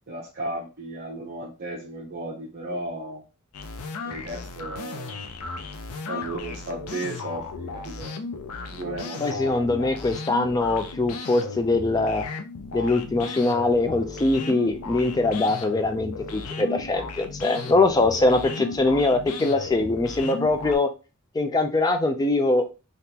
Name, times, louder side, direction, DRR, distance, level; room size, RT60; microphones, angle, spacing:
voice 1, 0.1-3.2 4.1-5.2 6.1-8.1 8.7-9.5, right 1 dB, 45° right, -4 dB, 0.7 m, -34 dB
sound 1, 3.5-20.8, left 4 dB, 85° left, 0.5 m, -35 dB
voice 2, 9.2-12.3 12.7-20.9 21.3-22.7, left 2 dB, 15° left, 6 dB, 0.3 m, -22 dB
3.5 x 2.5 x 2.8 m, 0.31 s
head